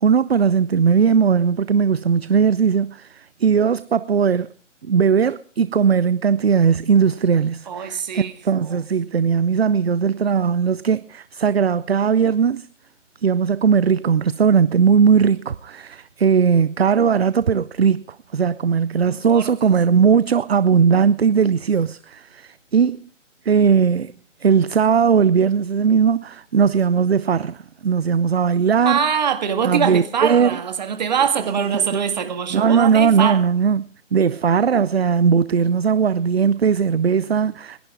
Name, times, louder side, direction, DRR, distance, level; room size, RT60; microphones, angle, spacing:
voice 1, 0.0-4.5 4.8-12.7 13.2-18.0 18.3-23.0 23.5-24.1 24.4-29.0 29.6-30.6 32.5-33.8 34.1-37.9, right 6 dB, 55° right, 0.6 m, -18 dB
voice 2, 7.7-8.8 19.1-19.5 28.9-33.5, right 7 dB, 35° right, 2.0 m, -23 dB
29.5 x 11.5 x 3.5 m
figure-of-eight pair, 150°, 38 cm